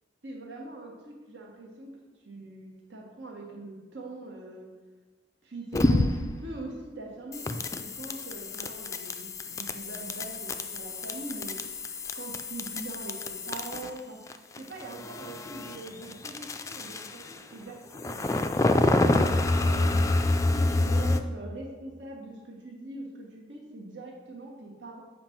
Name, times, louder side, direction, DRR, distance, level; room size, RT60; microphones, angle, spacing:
voice 1, 0.2-1.9 2.2-4.7 5.4-11.6 12.1-14.2 14.5-19.1 19.6-25.0, right 2 dB, 85° right, -1 dB, 1.5 m, -42 dB
sound 1, 5.7-6.4 7.3-14.0 14.3-17.4 17.9-21.2, left 2 dB, 15° left, 0.3 m, -28 dB
7.7 x 5.2 x 4.4 m, 1.3 s
head